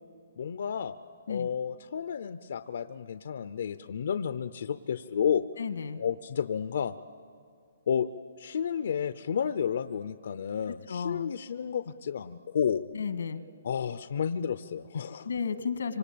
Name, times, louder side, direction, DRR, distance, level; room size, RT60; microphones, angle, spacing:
voice 1, 0.4-0.9 1.3-5.5 6.0-7.0 7.9-8.1 8.4-12.8 13.6-15.3, left 7 dB, 60° left, 12 dB, 0.6 m, -31 dB
voice 2, 5.6-6.0 10.9-11.3 12.9-13.4 15.3-16.0, left 6 dB, 90° left, 10 dB, 1.6 m, -33 dB
26.5 x 25.5 x 8.6 m, 2.3 s
hypercardioid pair, 170°, 0 cm